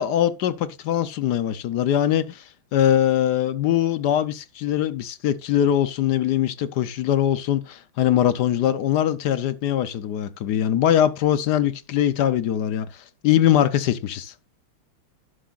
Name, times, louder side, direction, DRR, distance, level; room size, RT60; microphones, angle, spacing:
voice 1, 0.0-14.3, left 10 dB, 65° left, 1.1 m, -22 dB
11.5 x 11.5 x 2.4 m
omnidirectional pair, 2.3 m